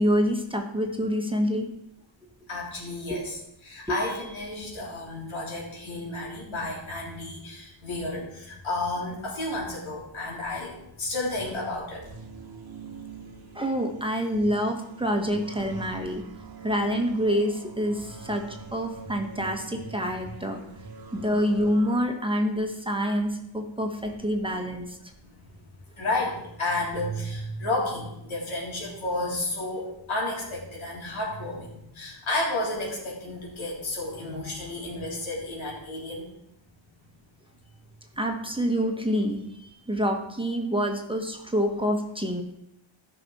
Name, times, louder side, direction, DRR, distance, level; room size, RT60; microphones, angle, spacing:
voice 1, 0.0-1.7 3.1-3.2 3.9-4.0 13.5-16.2 16.6-18.4 18.7-20.6 21.1-25.0 38.2-42.4, equal, 10° right, 2 dB, 1.1 m, -27 dB
voice 2, 2.5-3.4 3.6-12.5 15.6-15.7 25.2-25.3 26.0-36.3, left 2 dB, 90° left, -4 dB, 3.8 m, -32 dB
sound 1, 12.0-22.0, right 7 dB, 50° right, 1.1 m, -45 dB
14.0 x 5.9 x 4.2 m, 0.80 s
wide cardioid pair, 120°, 47 cm